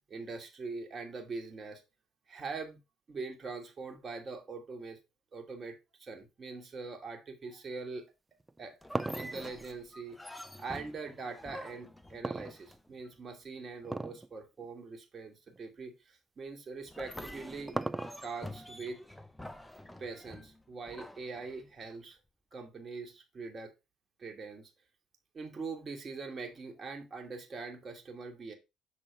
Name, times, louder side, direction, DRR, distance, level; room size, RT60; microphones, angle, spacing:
voice 1, 0.1-1.8 2.3-2.8 3.1-5.0 5.3-8.1 8.6-8.8 9.1-17.8 18.2-19.0 20.0-22.2 22.5-23.7 24.2-24.7 25.3-28.5, right 4 dB, 40° right, 1.5 m, -43 dB
sound 1, 8.4-10.9 12.2-13.1 13.8-14.3 14.6-14.7 15.5-15.6 17.0-18.5, right 2 dB, 15° right, 0.4 m, -37 dB
sound 2, 8.8-13.1 16.9-22.0, left 1 dB, 10° left, 0.7 m, -48 dB
6.5 x 3.7 x 4.5 m
hypercardioid pair, 55°, 0 cm